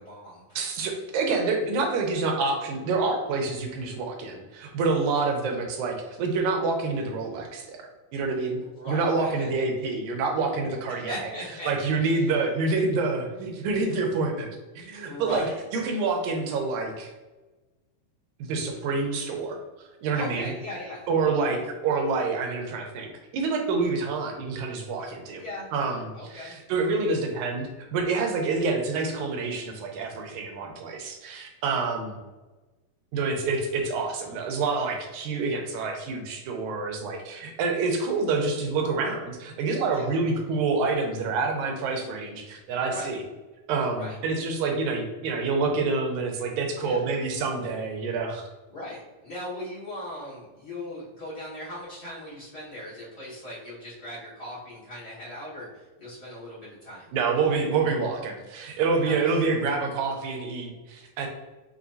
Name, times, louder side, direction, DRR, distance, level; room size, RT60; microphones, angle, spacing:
voice 1, 0.0-0.7 8.6-9.6 10.9-12.3 15.0-15.6 20.1-21.1 25.4-25.7 26.1-26.5 39.9-40.2 42.9-43.1 43.9-44.2 46.8-47.0 48.7-57.1 59.0-59.4, left 1 dB, 40° left, -9 dB, 0.9 m, -39 dB
voice 2, 0.6-8.6 8.9-11.3 11.7-14.5 14.8-15.5 15.7-17.1 18.4-19.6 20.0-20.5 21.1-25.4 25.7-32.2 33.1-43.2 43.7-48.4 57.1-61.3, right 4 dB, 85° right, 2 dB, 2.1 m, -27 dB
6.0 x 2.7 x 2.7 m, 1.2 s
omnidirectional pair, 3.3 m